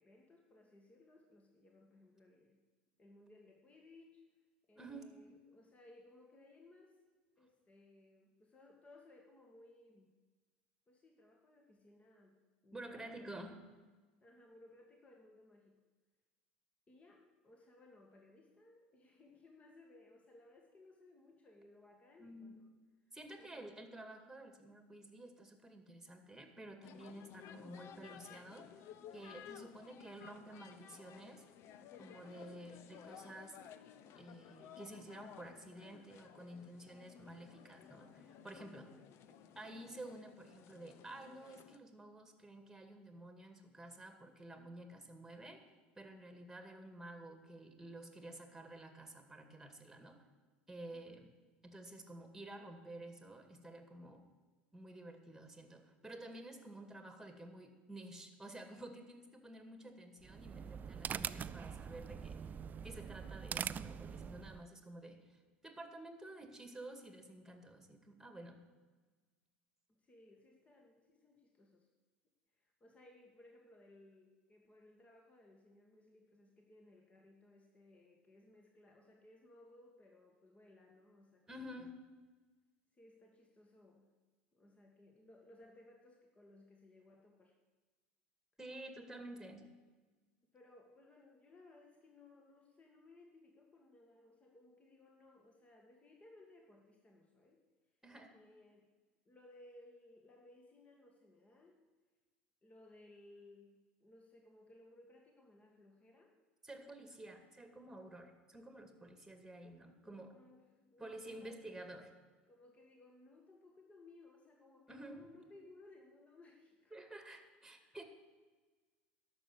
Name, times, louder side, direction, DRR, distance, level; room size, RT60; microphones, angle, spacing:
voice 1, 0.0-2.6 3.0-4.2 4.7-7.0 7.4-10.1 10.9-12.4 12.6-13.6 14.2-15.8 16.9-22.7 23.3-23.7 50.9-51.2 69.9-71.9 72.6-81.9 82.9-84.1 84.5-87.6 90.5-97.6 98.3-98.9 99.3-101.8 102.6-106.4 110.2-112.0 112.5-117.1 117.8-118.0, left 2 dB, 20° left, 1 dB, 1.9 m, -62 dB
voice 2, 4.8-5.1 12.7-13.6 22.2-22.7 23.1-28.7 29.1-31.4 32.0-33.6 34.2-38.9 39.6-45.6 46.0-50.2 50.7-51.3 51.6-54.2 54.7-62.4 62.8-65.2 65.6-68.6 81.5-82.0 88.6-89.6 98.0-98.4 106.6-110.4 111.0-112.1 114.9-115.3 116.9-118.0, right 1 dB, 5° right, 6 dB, 2.1 m, -51 dB
sound 1, 26.8-41.8, left 9 dB, 50° left, 0.7 m, -56 dB
sound 2, 60.2-64.7, right 7 dB, 30° right, 0.4 m, -43 dB
11.5 x 6.9 x 8.3 m, 1.3 s
hypercardioid pair, 80°, 6 cm